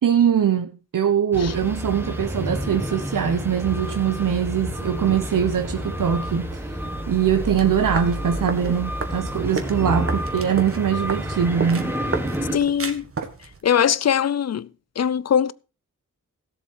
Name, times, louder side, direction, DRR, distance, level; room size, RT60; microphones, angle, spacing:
voice 1, 0.0-6.8 7.1-11.9, right 8 dB, 80° right, 0.9 m, -22 dB
sound 1, 1.3-12.6, equal, 5° right, 1.5 m, -30 dB
sound 2, 7.6-13.6, right 4 dB, 45° right, 1.6 m, -33 dB
voice 2, 12.5-13.1 13.6-14.7 15.0-15.5, left 8 dB, 55° left, 0.5 m, -21 dB
17.0 x 7.5 x 4.5 m
wide cardioid pair, 140°, 32 cm